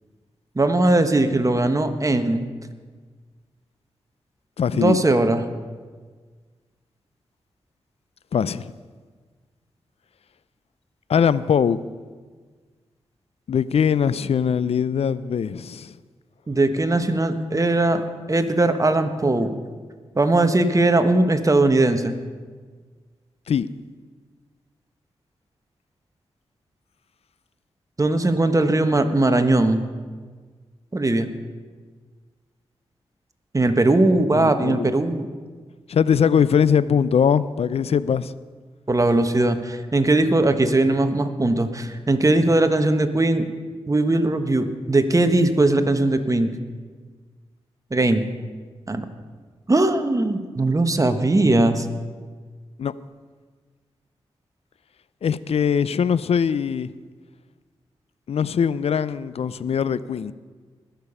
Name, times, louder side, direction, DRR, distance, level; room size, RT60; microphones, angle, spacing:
voice 1, 0.5-2.4 4.7-5.4 16.5-19.5 20.1-22.1 28.0-29.8 30.9-31.3 33.5-35.3 38.9-43.5 43.9-46.5 47.9-48.2 48.9-49.1 49.7-51.9, right 2 dB, 30° right, 8 dB, 1.3 m, -19 dB
voice 2, 4.6-5.0 8.3-8.7 11.1-11.8 13.5-15.9 23.5-23.7 34.3-34.9 35.9-38.3 52.8-52.9 55.2-56.9 58.3-60.3, left 7 dB, 65° left, 17 dB, 0.5 m, -21 dB
20.5 x 6.9 x 5.5 m, 1.5 s
cardioid pair, 45°, 11 cm